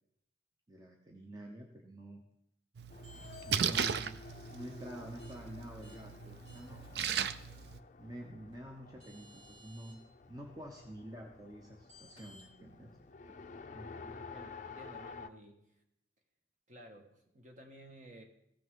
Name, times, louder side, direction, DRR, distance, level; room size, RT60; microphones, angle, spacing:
voice 1, 0.7-2.2 3.5-4.2 4.5-6.9 8.0-12.9 13.3-13.4 13.7-14.2, right 1 dB, 20° right, 1 dB, 0.8 m, -48 dB
Splash splatter, 2.8-7.8, right 7 dB, 60° right, 0.4 m, -37 dB
Race car auto racing, 2.9-15.3, left 4 dB, 40° left, 0.4 m, -52 dB
sound 1, 3.0-3.6 5.2-5.3 5.8-6.0 6.5-6.9 8.5-8.6 9.0-9.9 11.9-12.4, left 1 dB, 80° right, 4.0 m, -58 dB
voice 2, 14.1-15.6 16.7-18.2, right 1 dB, 45° right, 3 dB, 1.3 m, -54 dB
15.0 x 6.1 x 3.6 m, 0.77 s
head